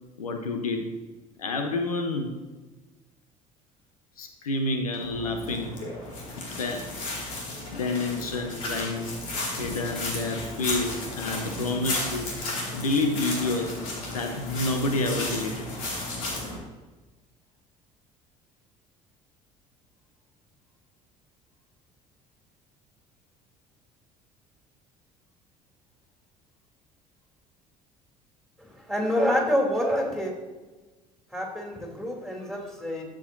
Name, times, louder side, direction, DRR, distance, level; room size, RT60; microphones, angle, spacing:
voice 1, 0.2-0.9 1.4-2.4 4.2-5.8 6.5-7.3 7.7-9.1 9.6-13.7 14.1-15.7, left 2 dB, 85° left, 5 dB, 0.8 m, -29 dB
sound 1, 4.9-16.6, left 2 dB, 70° left, 2.3 m, -34 dB
voice 2, 28.6-30.3 31.3-33.0, equal, ahead, -1 dB, 2.8 m, -27 dB
12.5 x 7.5 x 2.6 m, 1.2 s
hypercardioid pair, 60°, 18 cm